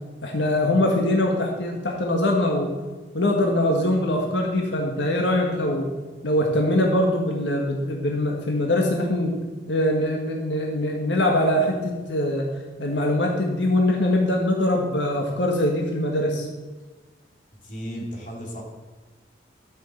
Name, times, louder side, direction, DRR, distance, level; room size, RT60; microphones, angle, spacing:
voice 1, 0.2-2.7 3.1-5.9 6.2-9.3 9.7-12.5 12.8-16.5, left 1 dB, 90° left, 0 dB, 1.7 m, -22 dB
voice 2, 17.6-18.6, equal, 45° left, -2 dB, 3.1 m, -34 dB
12.0 x 6.6 x 7.8 m, 1.3 s
head